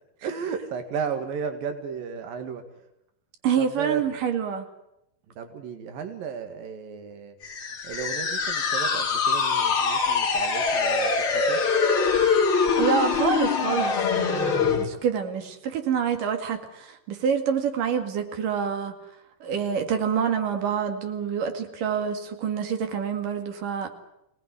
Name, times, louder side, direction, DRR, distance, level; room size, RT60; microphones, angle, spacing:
voice 1, 0.2-2.6 3.6-4.0 5.4-7.4 7.8-11.6, right 6 dB, 90° right, 7 dB, 3.6 m, -34 dB
voice 2, 3.4-4.7 12.8-19.0 19.4-23.9, right 7 dB, 70° right, 5 dB, 3.8 m, -27 dB
sound 1, 7.4-14.9, left 5 dB, 40° left, 3.1 m, -23 dB
26.5 x 18.5 x 9.7 m, 0.84 s
omnidirectional pair, 3.9 m